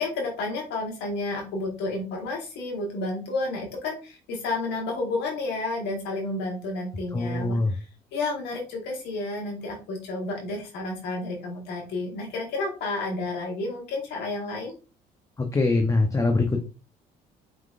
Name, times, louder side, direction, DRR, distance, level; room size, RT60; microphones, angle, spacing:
voice 1, 0.0-7.8 8.1-14.7, left 2 dB, 80° left, -1 dB, 1.2 m, -31 dB
voice 2, 7.1-7.7 15.4-16.6, left 3 dB, 20° left, 4 dB, 0.7 m, -23 dB
4.6 x 3.8 x 2.4 m, 0.33 s
supercardioid pair, 80°, 17 cm